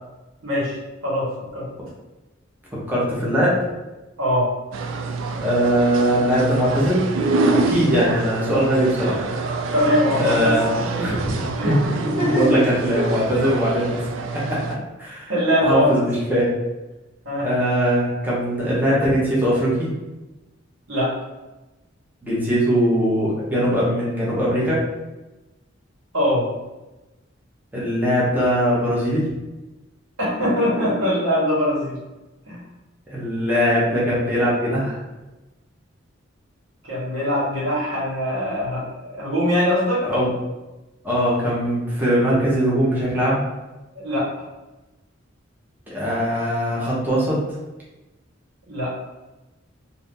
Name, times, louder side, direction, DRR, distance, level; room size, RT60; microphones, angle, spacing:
voice 1, 0.4-0.8 1.0-1.3 1.5-1.6 4.2-4.5 9.7-10.5 10.9-11.2 11.6-11.7 12.0-12.6 15.3-16.0 17.2-17.5 20.9-21.1 26.1-26.4 30.2-32.0 32.5-32.6 36.8-40.0 43.9-44.3 48.7-48.9, equal, 90° right, -6 dB, 1.4 m, -22 dB
voice 2, 2.9-3.6 5.4-7.1 7.4-9.2 10.2-10.7 11.0-11.7 12.2-14.0 14.3-14.6 15.0-15.3 15.6-16.5 17.4-19.9 22.2-24.8 27.7-29.3 33.1-35.0 40.0-40.3 41.0-43.4 45.9-47.4, equal, 10° right, -7 dB, 0.8 m, -21 dB
sound 1, 4.7-14.8, right 3 dB, 75° right, 0.4 m, -26 dB
2.7 x 2.6 x 3.6 m, 1.0 s
head